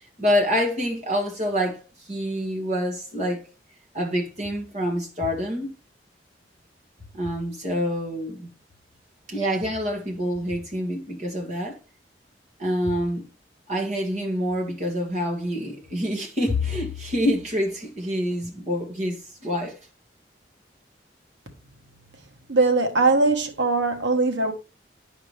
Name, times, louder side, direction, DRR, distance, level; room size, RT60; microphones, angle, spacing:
voice 1, 0.2-3.4 3.9-5.8 7.1-8.5 9.3-11.8 12.6-13.3 13.7-19.8, equal, 40° right, 2.1 m, -26 dB
voice 2, 22.5-24.5, right 3 dB, 85° right, 1.4 m, -21 dB
10.5 x 4.9 x 3.3 m
head